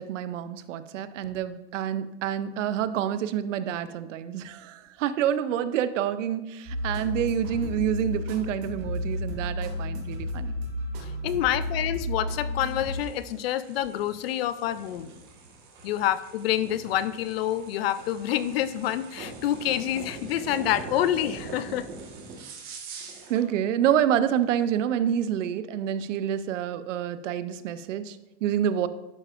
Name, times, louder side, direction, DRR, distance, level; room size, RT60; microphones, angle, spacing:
voice 1, 0.0-10.5 23.3-28.9, right 10 dB, 85° right, 13 dB, 0.6 m, -28 dB
sound 1, 6.7-13.5, left 1 dB, 45° right, 1.9 m, -32 dB
voice 2, 11.0-15.1 15.8-21.9, left 12 dB, 55° left, 15 dB, 0.4 m, -27 dB
sound 2, 12.5-23.5, right 3 dB, 25° right, 1.3 m, -43 dB
11.5 x 5.0 x 2.5 m, 0.99 s
supercardioid pair, 165°, 36 cm